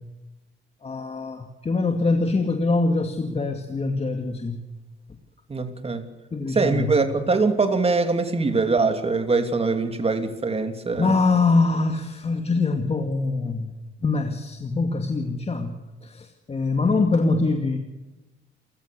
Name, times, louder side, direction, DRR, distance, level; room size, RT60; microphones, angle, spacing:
voice 1, 0.8-4.6 6.3-7.0 11.0-13.7 14.0-15.8 16.0-17.8, left 3 dB, 30° left, 5 dB, 2.2 m, -23 dB
voice 2, 5.5-6.1 6.5-11.2 16.8-16.9, right 3 dB, 30° right, 7 dB, 3.1 m, -23 dB
29.0 x 15.5 x 6.9 m, 1.1 s
cardioid pair, 90°, 20 cm